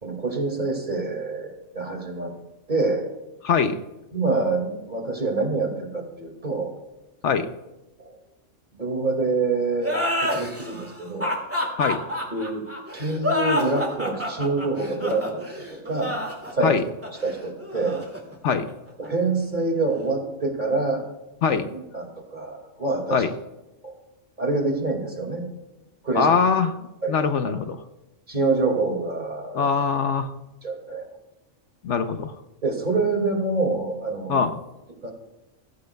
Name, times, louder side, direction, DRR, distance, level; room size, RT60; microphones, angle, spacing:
voice 1, 0.0-2.4 2.7-3.1 4.1-6.7 8.0-8.2 8.7-11.3 12.3-12.7 12.9-16.2 16.5-16.8 17.2-18.0 19.0-21.1 21.5-23.3 23.8-23.9 24.4-25.5 26.0-26.3 27.0-27.2 28.3-29.7 30.6-31.1 32.6-34.4 35.0-35.1, right 3 dB, 35° right, 2 dB, 2.4 m, -26 dB
voice 2, 3.4-3.8 7.2-7.5 11.8-12.0 16.6-16.8 18.4-18.7 21.4-21.7 23.1-23.3 26.1-26.7 27.1-27.8 29.5-30.3 31.8-32.3 34.3-34.5, left 6 dB, 65° left, 9 dB, 1.1 m, -22 dB
sound 1, 9.8-19.1, left 1 dB, 10° right, 2.3 m, -28 dB
17.0 x 14.5 x 2.3 m, 0.99 s
omnidirectional pair, 1.3 m